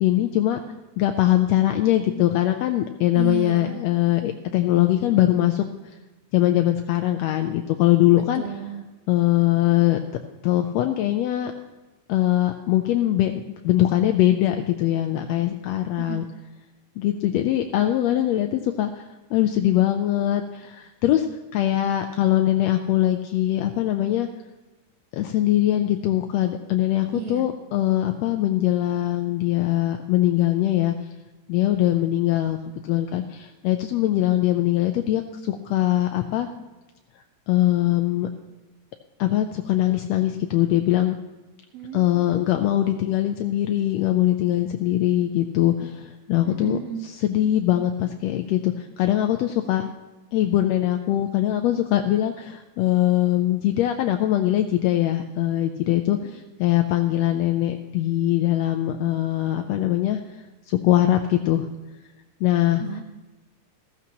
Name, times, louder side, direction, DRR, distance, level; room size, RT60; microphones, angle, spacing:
voice 1, 0.0-0.6 1.0-5.6 6.3-8.4 9.1-10.0 10.4-11.5 12.1-13.3 13.6-16.3 17.0-19.0 19.3-21.3 21.5-24.3 25.1-30.9 31.5-32.6 32.8-36.5 37.5-38.3 39.2-41.2 41.9-49.9 50.3-56.2 56.6-60.2 60.7-61.6 62.4-62.8, left 13 dB, 80° left, 5 dB, 1.6 m, -22 dB
voice 2, 3.2-3.8 8.1-8.9 16.0-16.3 27.1-27.5 41.7-42.2 46.5-47.1 56.2-56.3 62.8-63.0, right 10 dB, 70° right, 4 dB, 1.8 m, -33 dB
14.5 x 14.0 x 2.9 m, 1.1 s
omnidirectional pair, 3.4 m